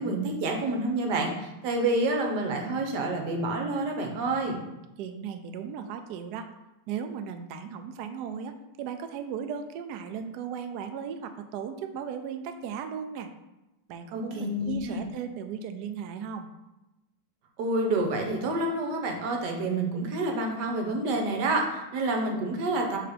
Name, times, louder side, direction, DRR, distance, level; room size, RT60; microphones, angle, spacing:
voice 1, 0.0-4.6 14.1-15.0 17.6-23.0, right 2 dB, 60° right, 2 dB, 1.4 m, -28 dB
voice 2, 5.0-6.5 6.9-13.3 13.9-16.5, right 7 dB, 85° right, 7 dB, 0.8 m, -36 dB
6.4 x 3.4 x 5.0 m, 0.96 s
omnidirectional pair, 2.3 m